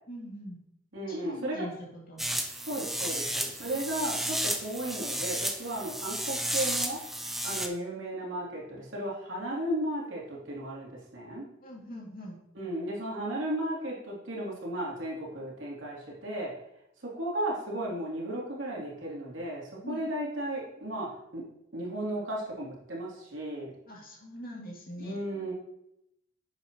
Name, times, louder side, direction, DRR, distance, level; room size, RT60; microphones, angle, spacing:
voice 1, 0.1-0.6 1.1-2.2 11.6-12.4 19.8-20.1 23.9-25.2, equal, 45° left, -2 dB, 2.4 m, -43 dB
voice 2, 0.9-1.6 2.7-7.0 7.4-11.4 12.5-16.5 17.0-21.4 21.7-23.7 25.0-25.5, right 1 dB, 70° right, -4 dB, 3.3 m, -35 dB
sound 1, 2.2-7.7, right 1 dB, ahead, 0.6 m, -33 dB
10.0 x 7.5 x 3.1 m, 0.80 s
head